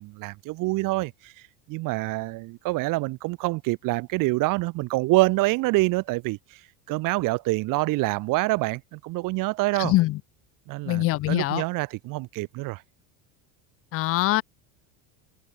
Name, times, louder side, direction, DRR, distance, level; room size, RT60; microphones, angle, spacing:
voice 1, 0.0-1.3 1.7-6.4 6.9-9.9 10.7-12.8, right 22 dB, 50° right, 0.8 m, -26 dB
voice 2, 9.8-10.2 10.9-11.6 13.9-14.4, left 18 dB, 35° left, 0.4 m, -23 dB
supercardioid pair, 135°, 42 cm